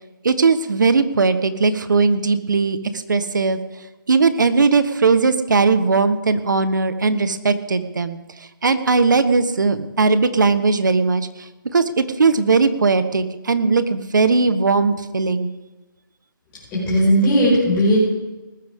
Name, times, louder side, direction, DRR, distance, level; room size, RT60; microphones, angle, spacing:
voice 1, 0.2-3.6 4.1-8.2 8.6-15.5, right 4 dB, 60° right, 11 dB, 1.3 m, -18 dB
voice 2, 16.7-18.0, equal, 10° left, -12 dB, 5.6 m, -16 dB
19.5 x 13.5 x 3.7 m, 1.1 s
hypercardioid pair, 175°, 11 cm